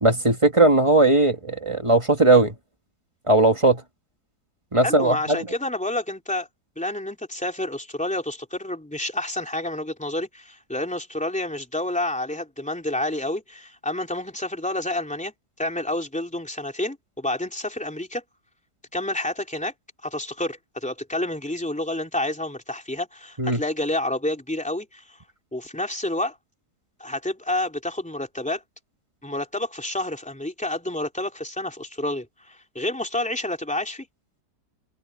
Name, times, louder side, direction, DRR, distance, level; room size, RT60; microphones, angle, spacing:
voice 1, 0.0-2.5 3.3-3.8 4.7-5.4 23.4-23.6, right 2 dB, 20° right, 1.3 m, -18 dB
voice 2, 4.8-6.5 6.8-15.3 15.6-18.2 18.9-19.7 20.0-25.2 25.5-26.4 27.0-28.6 29.2-34.1, left 1 dB, 5° left, 3.3 m, -29 dB
omnidirectional pair, 1.9 m